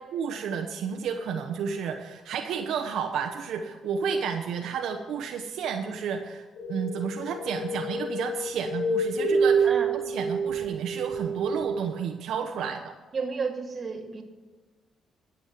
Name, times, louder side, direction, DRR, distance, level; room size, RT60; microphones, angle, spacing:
voice 1, 0.1-6.4 6.7-9.7 10.1-12.9, right 6 dB, 75° right, 4 dB, 0.9 m, -31 dB
sound 1, 6.6-11.8, right 3 dB, 80° left, 4.0 m, -28 dB
voice 2, 9.6-10.0 12.6-12.7 13.1-14.2, right 4 dB, 40° right, 4 dB, 2.1 m, -32 dB
12.5 x 7.3 x 7.5 m, 1.3 s
cardioid pair, 90°, 0 cm